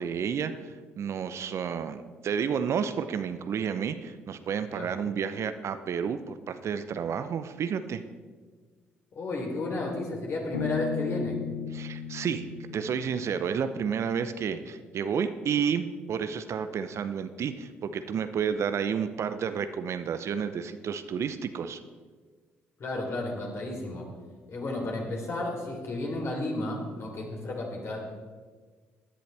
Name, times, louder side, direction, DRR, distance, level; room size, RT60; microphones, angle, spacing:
voice 1, 0.0-8.0 11.7-12.5 12.7-21.8, right 7 dB, 50° right, 10 dB, 0.7 m, -31 dB
voice 2, 9.1-11.5 22.8-24.1 24.5-28.0, left 2 dB, 50° left, -1 dB, 3.6 m, -33 dB
Bass guitar, 10.5-14.1, left 8 dB, 90° left, 0.6 m, -36 dB
17.0 x 10.5 x 3.4 m, 1.5 s
hypercardioid pair, 45°, 6 cm